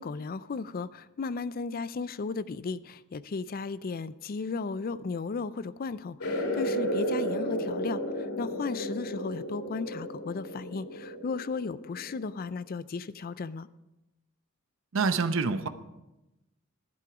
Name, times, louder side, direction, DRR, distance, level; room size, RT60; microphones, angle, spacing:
voice 1, 0.0-13.7, left 4 dB, 45° left, 16 dB, 0.4 m, -35 dB
sound 1, 6.2-12.4, equal, 80° left, 2.8 m, -33 dB
voice 2, 14.9-15.7, right 4 dB, 65° right, 10 dB, 0.7 m, -26 dB
11.5 x 10.5 x 4.9 m, 0.96 s
head